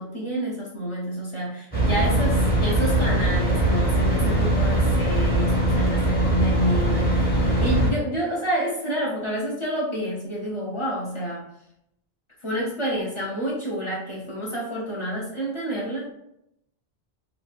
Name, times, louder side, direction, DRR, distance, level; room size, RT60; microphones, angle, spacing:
voice 1, 0.0-11.4 12.4-16.1, right 1 dB, 35° left, -5 dB, 0.6 m, -29 dB
sound 1, 1.7-7.9, right 1 dB, 10° left, 0.8 m, -21 dB
3.2 x 2.4 x 2.5 m, 0.77 s
omnidirectional pair, 1.0 m